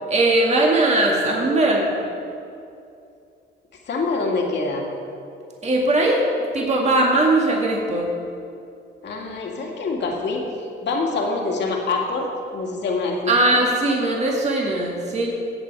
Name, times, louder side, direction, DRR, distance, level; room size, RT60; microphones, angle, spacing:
voice 1, 0.1-2.0 5.6-6.2 6.5-8.1 13.3-15.3, right 2 dB, 35° right, -1 dB, 2.0 m, -19 dB
voice 2, 3.9-4.9 9.0-10.5 10.8-12.3 12.5-13.6, left 3 dB, 60° left, 0 dB, 2.3 m, -25 dB
16.0 x 7.2 x 4.7 m, 2.6 s
cardioid pair, 90°, 20 cm